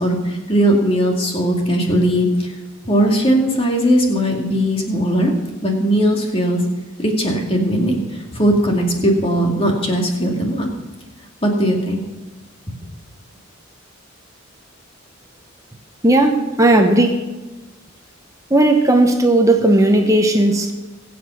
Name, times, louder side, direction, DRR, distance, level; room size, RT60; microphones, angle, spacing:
voice 1, 0.0-2.5 2.8-5.3 5.6-6.6 7.0-10.7 11.4-12.0, equal, 25° left, 0 dB, 2.4 m, -18 dB
voice 2, 16.0-17.2 18.5-20.7, right 1 dB, 15° right, 4 dB, 1.0 m, -14 dB
22.5 x 7.8 x 5.8 m, 1.2 s
head